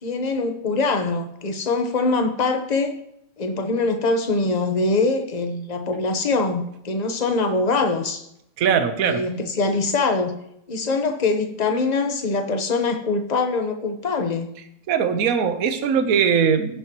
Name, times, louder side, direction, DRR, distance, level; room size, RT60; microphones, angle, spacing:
voice 1, 0.0-2.9 3.4-8.2 9.0-10.3 10.7-14.5, left 3 dB, 30° left, 5 dB, 1.0 m, -23 dB
voice 2, 8.6-9.2 14.9-16.8, right 7 dB, 55° right, 8 dB, 1.3 m, -20 dB
17.5 x 7.0 x 3.0 m, 0.77 s
omnidirectional pair, 1.9 m